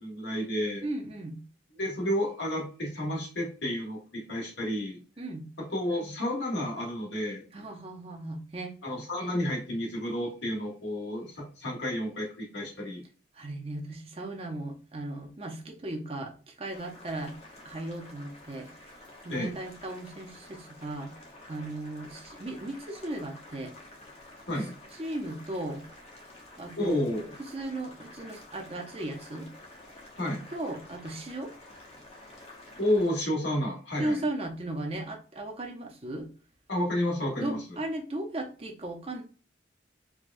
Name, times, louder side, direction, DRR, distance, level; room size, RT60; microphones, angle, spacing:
voice 1, 0.0-0.8 1.8-5.0 5.6-7.4 8.8-13.0 19.3-19.5 24.5-24.7 26.8-27.3 30.2-30.4 32.8-34.2 36.7-37.6, left 1 dB, 75° left, -2 dB, 1.6 m, -31 dB
voice 2, 0.8-1.4 5.2-5.5 7.5-8.7 13.3-17.4 17.6-18.7 19.2-23.7 25.0-25.8 26.6-27.0 27.5-29.5 30.5-31.5 34.0-36.3 37.4-39.2, right 1 dB, 30° right, 2 dB, 0.6 m, -36 dB
Boiling, 16.7-33.1, left 1 dB, 35° left, 0.9 m, -50 dB
4.7 x 2.3 x 2.5 m, 0.37 s
head